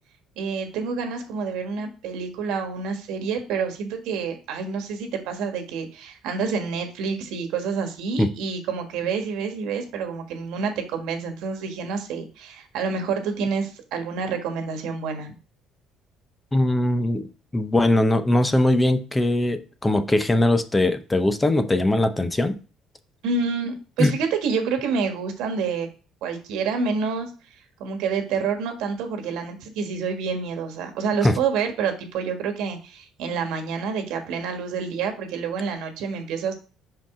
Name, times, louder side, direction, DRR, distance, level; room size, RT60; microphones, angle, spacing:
voice 1, 0.4-15.4 23.2-25.9 26.2-27.3 27.8-36.5, right 5 dB, 80° right, 5 dB, 1.5 m, -28 dB
voice 2, 16.5-17.3 17.5-22.6 24.0-24.1 31.2-31.4, left 1 dB, 15° left, 10 dB, 0.7 m, -21 dB
5.7 x 5.0 x 3.7 m, 0.36 s
cardioid pair, 100°, 0 cm